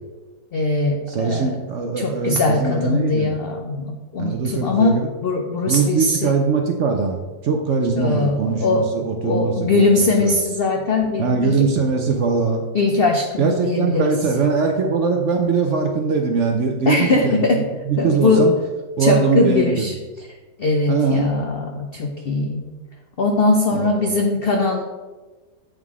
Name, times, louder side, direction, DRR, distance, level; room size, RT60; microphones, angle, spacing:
voice 1, 0.5-1.5 2.0-5.0 5.2-6.3 7.9-8.9 9.2-11.6 12.7-14.2 16.9-17.6 18.0-18.5 19.0-20.3 20.6-22.6 23.2-24.8, left 3 dB, 80° left, 3 dB, 0.5 m, -20 dB
voice 2, 1.1-3.3 4.2-5.1 5.7-10.4 11.2-12.7 13.4-17.4 17.9-18.5 19.0-19.9 20.9-21.3 23.7-23.9, right 5 dB, 60° right, 3 dB, 0.8 m, -21 dB
7.9 x 3.7 x 4.7 m, 1.3 s
omnidirectional pair, 1.8 m